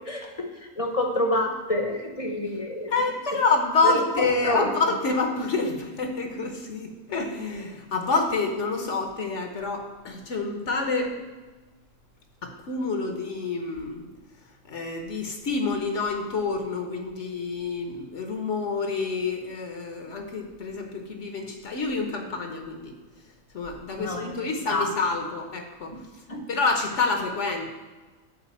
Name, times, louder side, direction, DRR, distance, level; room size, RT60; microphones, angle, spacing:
voice 1, 0.1-2.9 3.8-4.7 24.0-24.3 24.7-24.9 25.9-26.0 26.3-26.4, left 1 dB, 30° left, 2 dB, 0.9 m, -28 dB
voice 2, 2.9-11.1 12.4-14.1 14.7-22.9 23.5-25.9 26.5-27.7, left 4 dB, 60° left, 4 dB, 1.2 m, -28 dB
9.1 x 3.8 x 7.1 m, 1.2 s
omnidirectional pair, 1.4 m